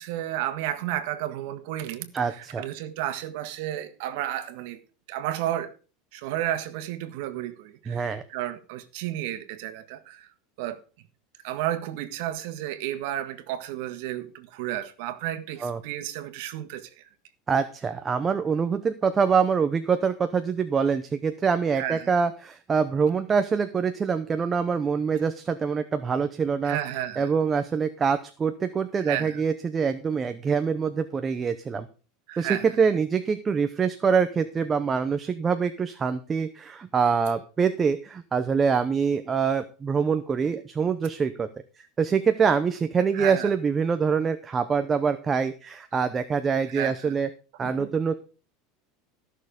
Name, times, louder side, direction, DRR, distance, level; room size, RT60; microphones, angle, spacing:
voice 1, 0.0-4.8 5.1-5.7 6.1-10.3 10.6-10.8 11.4-17.0 21.7-22.1 26.6-27.3 29.0-29.4 32.3-32.7 43.1-43.5 46.7-47.1 47.6-47.9, right 12 dB, 65° right, 1.5 m, -32 dB
voice 2, 2.1-2.7 7.9-8.2 15.6-15.8 17.5-26.8 27.2-31.9 32.4-41.5 42.0-47.3 47.6-48.1, right 6 dB, 15° right, 0.7 m, -25 dB
14.0 x 6.5 x 5.1 m
supercardioid pair, 160°, 0 cm